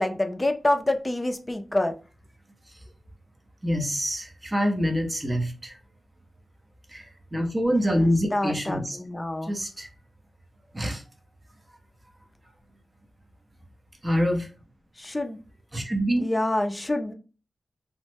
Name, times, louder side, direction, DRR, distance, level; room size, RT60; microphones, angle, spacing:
voice 1, 0.0-1.9 8.3-9.5 15.0-15.4 16.2-17.1, left 1 dB, 20° left, 6 dB, 0.4 m, -26 dB
voice 2, 3.6-5.8 6.9-9.0 9.4-9.9 10.7-11.0 14.0-14.5 15.7-16.2, equal, 20° right, 4 dB, 0.7 m, -26 dB
3.0 x 2.1 x 3.2 m, 0.35 s
wide cardioid pair, 95°, 0 cm